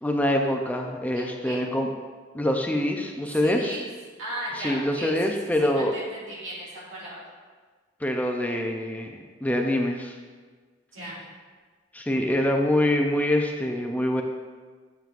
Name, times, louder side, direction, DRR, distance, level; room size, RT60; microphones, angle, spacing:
voice 1, 0.0-1.9 2.3-3.8 4.5-5.9 8.0-9.2 9.4-10.2 11.9-14.2, left 1 dB, 10° left, 2 dB, 0.5 m, -25 dB
voice 2, 1.1-1.6 3.4-3.8 4.2-5.1 5.8-7.2 10.9-11.2, right 1 dB, 70° right, -6 dB, 2.1 m, -36 dB
9.1 x 7.2 x 2.5 m, 1.5 s
head